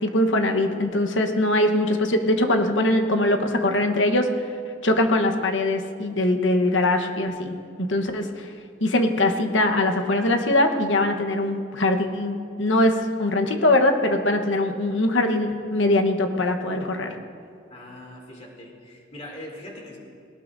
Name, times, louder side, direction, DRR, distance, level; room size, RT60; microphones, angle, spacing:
voice 1, 0.0-4.3 4.8-8.5 8.8-17.2, left 1 dB, 90° left, 5 dB, 1.1 m, -22 dB
voice 2, 17.7-20.0, left 1 dB, 35° left, -2 dB, 2.8 m, -41 dB
20.0 x 18.5 x 2.7 m, 2.4 s
head